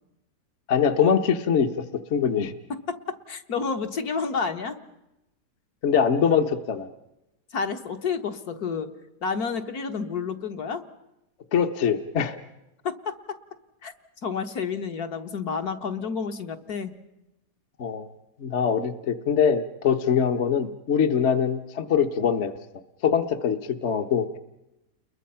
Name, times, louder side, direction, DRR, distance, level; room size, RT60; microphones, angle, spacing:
voice 1, 0.7-1.7 2.1-2.5 5.8-6.9 11.5-12.4 17.8-18.1 18.4-22.5 23.0-24.4, left 7 dB, 45° left, 7 dB, 1.2 m, -23 dB
voice 2, 2.9-4.8 7.5-8.9 9.2-10.8 12.8-13.1 13.8-13.9 14.2-16.9, left 5 dB, 65° left, 6 dB, 1.9 m, -30 dB
30.0 x 22.0 x 5.7 m, 0.93 s
omnidirectional pair, 1.8 m